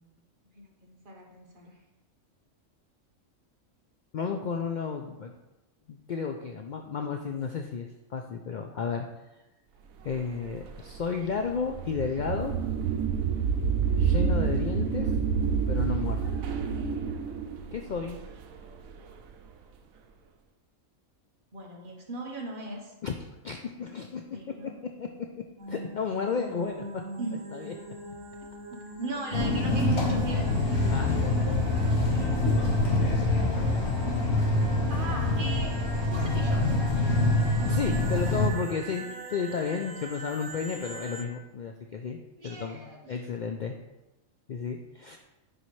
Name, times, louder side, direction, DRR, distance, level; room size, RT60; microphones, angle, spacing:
voice 1, 0.5-1.8 21.5-22.9 24.3-24.7 27.2-27.4 28.7-30.7 32.1-32.6 33.8-35.8 36.1-36.7 42.4-43.2, right 2 dB, 45° right, 0 dB, 1.1 m, -39 dB
voice 2, 4.1-5.3 5.9-9.1 10.0-12.5 14.0-15.1 15.7-16.2 17.7-18.2 23.0-23.2 23.4-24.4 25.0-25.1 25.7-26.8 27.5-27.7 30.9-31.4 31.8-32.2 33.2-33.5 37.6-42.2 42.4-43.8 44.5-45.2, left 5 dB, 85° left, 4 dB, 0.4 m, -33 dB
sound 1, 10.1-19.1, right 6 dB, 90° right, 1.1 m, -28 dB
sound 2, 25.6-41.2, right 2 dB, 70° right, 1.3 m, -42 dB
sound 3, 29.3-38.5, left 2 dB, 55° left, 1.4 m, -25 dB
10.0 x 4.2 x 3.1 m, 1.0 s
omnidirectional pair, 1.4 m